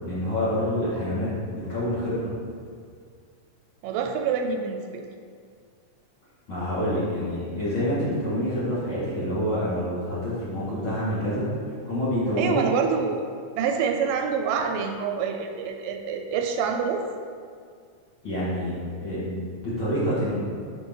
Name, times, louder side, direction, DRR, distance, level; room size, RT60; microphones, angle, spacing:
voice 1, 0.0-2.3 6.5-11.4 11.9-12.7 18.2-20.3, equal, 40° left, -10 dB, 2.3 m, -27 dB
voice 2, 3.8-5.0 12.4-13.2 13.6-17.0, right 6 dB, 85° right, 4 dB, 2.2 m, -26 dB
6.5 x 4.5 x 5.4 m, 2.1 s
omnidirectional pair, 3.9 m